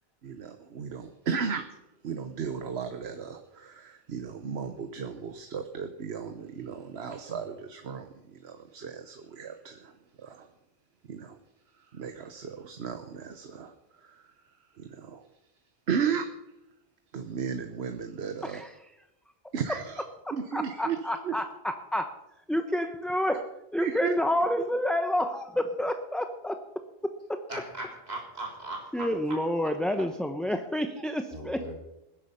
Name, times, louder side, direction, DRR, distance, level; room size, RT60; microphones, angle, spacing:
voice 1, 0.2-1.7 2.0-10.5 11.1-11.4 11.9-14.2 14.8-15.2 15.9-16.3 17.1-18.6 19.5-20.0 20.3-21.0 21.2-21.3 23.8-24.1, right 6 dB, 85° right, 8 dB, 1.2 m, -35 dB
voice 2, 18.4-18.8 20.2-22.1 22.5-26.6 27.0-27.4 28.9-31.7, left 1 dB, ahead, 6 dB, 0.8 m, -29 dB
voice 3, 27.5-29.4 31.3-31.7, right 2 dB, 40° right, -2 dB, 3.7 m, -39 dB
20.0 x 10.5 x 5.6 m, 0.90 s
omnidirectional pair, 1.0 m